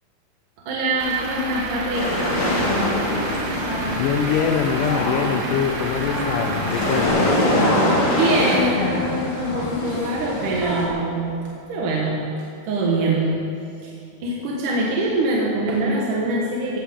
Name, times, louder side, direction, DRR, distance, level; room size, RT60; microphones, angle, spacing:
voice 1, 0.7-2.2 8.1-11.4 11.7-12.3 12.7-13.4 13.8-13.9 14.2-16.8, right 2 dB, 60° right, -4 dB, 2.7 m, -23 dB
Truck / Idling, 1.0-7.1, right 3 dB, 90° right, 3.7 m, -31 dB
sound 1, 1.9-8.6, left 1 dB, 30° left, 3.0 m, -24 dB
sound 2, 2.3-10.9, left 2 dB, 50° left, 3.3 m, -28 dB
voice 2, 3.9-7.4, left 8 dB, 85° left, 5 dB, 1.8 m, -24 dB
17.0 x 16.0 x 3.7 m, 2.6 s
omnidirectional pair, 4.5 m